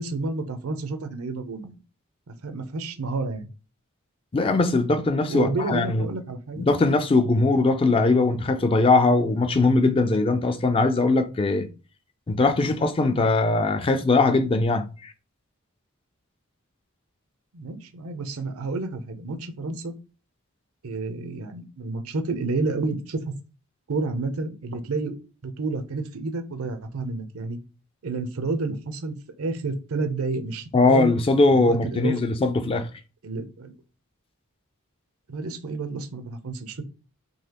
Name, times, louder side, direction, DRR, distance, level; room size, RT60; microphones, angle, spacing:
voice 1, 0.0-1.8 2.3-3.5 5.3-6.6 17.5-19.9 20.8-23.2 23.9-25.1 25.4-27.6 28.0-31.1 31.5-32.1 33.2-33.7 35.3-36.8, right 3 dB, 85° right, 0.7 m, -30 dB
voice 2, 4.3-6.0 6.6-11.7 12.3-15.1 30.7-32.9, left 3 dB, 25° left, 0.3 m, -21 dB
3.9 x 2.8 x 2.9 m
head